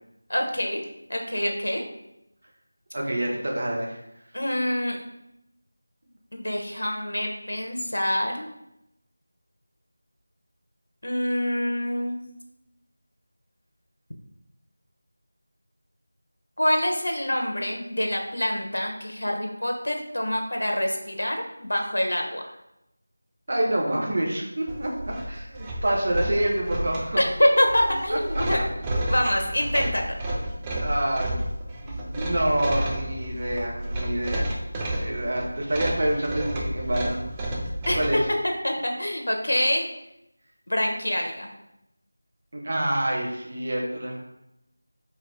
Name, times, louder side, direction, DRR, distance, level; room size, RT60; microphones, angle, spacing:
voice 1, 0.3-0.8 1.1-1.8 4.3-5.0 6.3-8.5 11.0-12.2 16.6-22.5 27.2-28.6 28.9-30.1 37.9-38.2 38.6-39.9 40.7-41.5, left 1 dB, 70° left, 2 dB, 0.9 m, -26 dB
voice 2, 2.9-4.0 23.5-27.2 28.1-28.2 30.8-31.5 31.8-34.5 35.0-37.6 37.9-38.2 42.5-44.2, right 1 dB, 50° right, -1 dB, 1.0 m, -27 dB
sound 1, 24.7-38.3, right 1 dB, 15° right, 0.4 m, -31 dB
4.7 x 2.8 x 3.4 m, 0.85 s
figure-of-eight pair, 170°, 0 cm